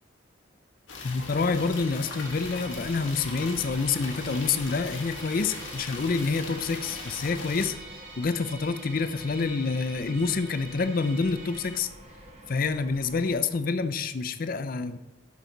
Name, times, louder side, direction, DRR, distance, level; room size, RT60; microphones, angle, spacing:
sound 1, 0.9-7.7, left 3 dB, 80° left, 1.4 m, -40 dB
voice 1, 1.0-7.7 8.2-11.9 12.5-15.0, left 4 dB, 45° left, 11 dB, 0.5 m, -27 dB
Musical instrument, 1.5-11.8, right 2 dB, 80° right, 2.3 m, -46 dB
sound 2, 2.2-13.8, right 1 dB, 35° right, 1.2 m, -49 dB
8.6 x 6.2 x 3.9 m, 1.0 s
head